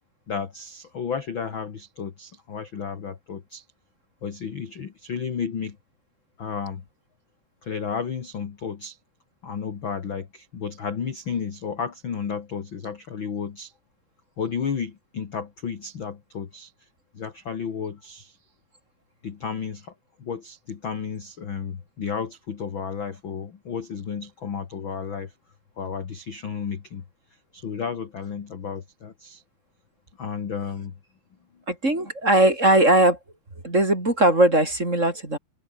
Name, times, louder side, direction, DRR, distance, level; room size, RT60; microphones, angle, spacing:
voice 1, 0.3-3.6 4.2-5.8 6.4-6.8 7.6-9.0 9.4-13.7 14.4-16.7 17.1-18.4 19.2-19.9 20.2-25.3 25.8-27.0 27.5-29.4 30.2-30.9, left 6 dB, 40° left, 2.0 m, -32 dB
voice 2, 31.7-33.2 33.6-35.4, right 1 dB, 20° right, 4.6 m, -19 dB
omnidirectional pair, 4.5 m